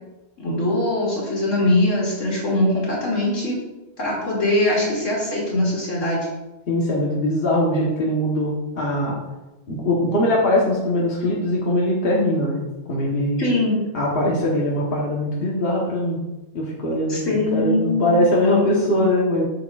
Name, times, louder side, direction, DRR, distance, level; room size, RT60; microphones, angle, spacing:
voice 1, 0.4-3.6 4.0-6.3 13.4-13.8 17.1-19.1, left 1 dB, 85° left, -5 dB, 2.9 m, -22 dB
voice 2, 6.7-9.1 9.7-12.6 12.9-13.4 13.9-16.2 16.5-19.4, left 1 dB, 50° left, -4 dB, 1.5 m, -21 dB
8.0 x 7.3 x 2.5 m, 1.0 s
omnidirectional pair, 1.3 m